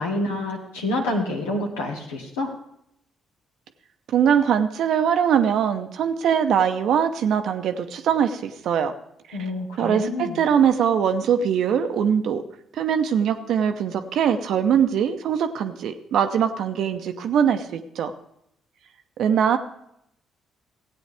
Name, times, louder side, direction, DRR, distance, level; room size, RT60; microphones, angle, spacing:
voice 1, 0.0-2.5 9.3-10.4, left 1 dB, 75° left, 1 dB, 1.4 m, -27 dB
voice 2, 4.1-8.9 9.3-9.4 9.8-12.4 12.8-18.1 19.2-19.6, right 8 dB, 60° right, 7 dB, 0.7 m, -22 dB
16.0 x 8.9 x 3.4 m, 0.75 s
figure-of-eight pair, 45°, 0 cm